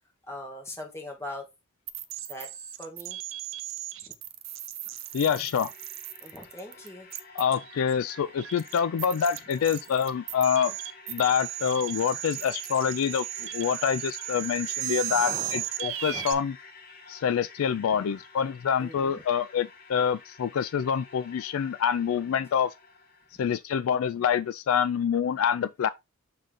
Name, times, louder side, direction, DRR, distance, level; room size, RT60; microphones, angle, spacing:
voice 1, 0.2-1.5 2.3-2.5 2.8-3.2 6.2-7.1 15.1-15.7 16.1-16.2 17.9-18.0 18.8-19.1 23.3-23.5, left 1 dB, 10° left, 1.8 m, -41 dB
sound 1, 1.9-16.3, right 14 dB, 60° right, 0.7 m, -36 dB
sound 2, 4.8-23.5, left 4 dB, 45° left, 1.5 m, -50 dB
voice 2, 5.1-5.7 7.3-10.7 11.1-16.6 17.1-22.7 23.4-25.9, left 7 dB, 70° left, 0.3 m, -26 dB
6.8 x 3.8 x 3.6 m
head